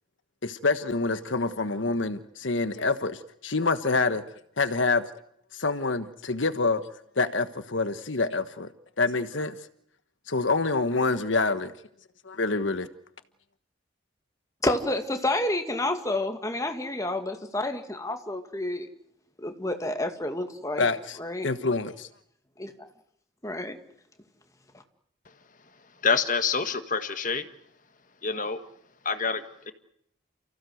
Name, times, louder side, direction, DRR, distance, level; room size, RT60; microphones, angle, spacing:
voice 1, 0.4-4.2 4.6-5.0 5.5-6.8 7.2-8.7 9.0-9.6 10.3-11.7 12.2-12.9 20.8-21.2 21.4-22.1, left 3 dB, 75° left, 11 dB, 1.3 m, -26 dB
voice 2, 14.6-18.9 19.4-20.9 21.2-21.5 22.6-22.7 23.4-23.8, left 1 dB, 15° left, 5 dB, 2.2 m, -29 dB
voice 3, 26.0-27.5 28.2-28.6 29.0-29.7, left 5 dB, 40° left, 9 dB, 1.6 m, -27 dB
30.0 x 16.0 x 7.9 m, 0.72 s
head